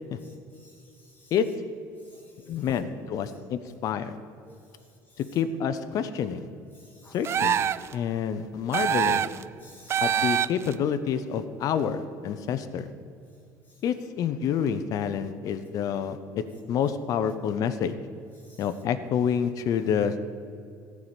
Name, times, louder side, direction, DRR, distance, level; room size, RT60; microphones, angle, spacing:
voice 1, 0.2-1.4 2.0-2.8 3.2-3.7 4.4-5.4 6.7-7.2 9.6-10.2 13.7-13.8 18.4-18.7, left 1 dB, 25° left, 1 dB, 2.0 m, -56 dB
voice 2, 2.5-4.2 5.3-6.5 7.1-7.6 7.9-9.3 10.0-12.9 13.8-17.9 18.6-20.2, left 8 dB, 50° left, 11 dB, 0.7 m, -28 dB
sound 1, 7.2-7.9 8.7-9.4 9.9-10.7, right 9 dB, 35° right, 0.4 m, -25 dB
14.5 x 4.8 x 8.9 m, 2.5 s
cardioid pair, 125°, 8 cm